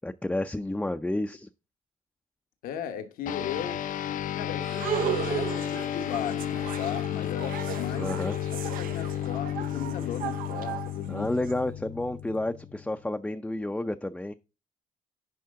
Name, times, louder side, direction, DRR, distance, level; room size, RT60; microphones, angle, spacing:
voice 1, 0.0-1.5 8.0-8.4 11.1-14.3, left 1 dB, 10° left, 0.5 m, -30 dB
voice 2, 2.6-3.8 4.3-8.1 8.5-11.3, left 8 dB, 85° left, 1.2 m, -37 dB
sound 1, 3.3-13.0, left 11 dB, 65° left, 0.6 m, -33 dB
sound 2, 4.6-11.5, right 9 dB, 75° right, 0.6 m, -35 dB
10.5 x 5.4 x 3.7 m
cardioid pair, 95°, 15 cm